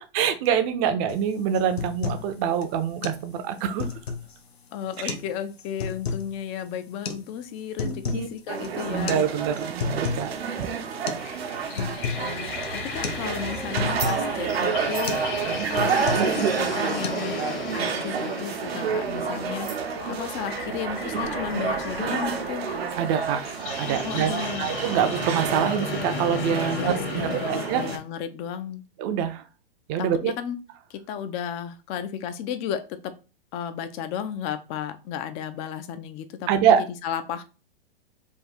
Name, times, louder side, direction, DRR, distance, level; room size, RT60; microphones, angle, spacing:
voice 1, 0.1-3.9 5.0-5.1 7.8-8.3 8.9-10.7 15.5-15.7 23.0-23.4 23.8-27.8 29.0-29.4 29.9-30.3 36.5-36.8, right 8 dB, 30° right, 9 dB, 0.5 m, -25 dB
sound 1, 1.1-1.2 1.5-2.3 2.6-2.7 3.0-3.2 3.6-4.4 4.9-5.3 5.6-6.3 7.0-7.2 7.6-8.3 8.6-8.7 9.1-9.2 9.6-10.3 10.6-10.7 11.1-11.3 11.5-12.3 12.6-12.8 13.0-13.2 13.5-14.2 14.6-14.8 15.1-15.3 15.6-16.4 16.7-17.1, left 5 dB, 85° left, 0.8 m, -31 dB
voice 2, 4.7-9.2 11.7-15.2 15.7-17.5 17.7-19.7 20.1-22.7 24.0-24.7 26.6-28.8 30.0-30.6 30.9-33.1 33.5-37.4, left 9 dB, 20° left, 11 dB, 0.3 m, -34 dB
sound 2, 8.5-28.0, right 6 dB, 80° right, 0.9 m, -29 dB
sound 3, 11.0-28.0, left 4 dB, 55° left, 1.2 m, -35 dB
3.5 x 2.3 x 4.2 m, 0.32 s
hypercardioid pair, 125°, 31 cm